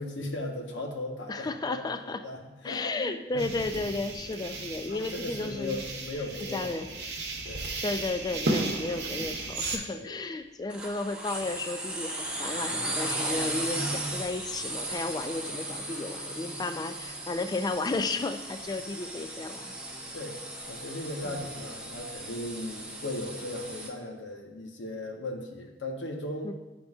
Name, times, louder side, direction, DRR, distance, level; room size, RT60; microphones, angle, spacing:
voice 1, 0.0-3.5 4.5-7.0 7.5-7.7 9.9-10.1 20.1-20.4 20.7-26.5, left 1 dB, 85° left, 1 dB, 0.9 m, -37 dB
voice 2, 1.3-2.2 2.6-5.8 6.2-6.9 7.8-19.7 21.2-21.5 26.4-26.5, left 3 dB, 20° left, 8 dB, 0.3 m, -33 dB
sound 1, 3.4-9.8, right 2 dB, 65° right, 0.9 m, -34 dB
sound 2, 10.7-23.9, right 1 dB, 5° right, 0.7 m, -36 dB
10.5 x 3.7 x 2.4 m, 1.2 s
head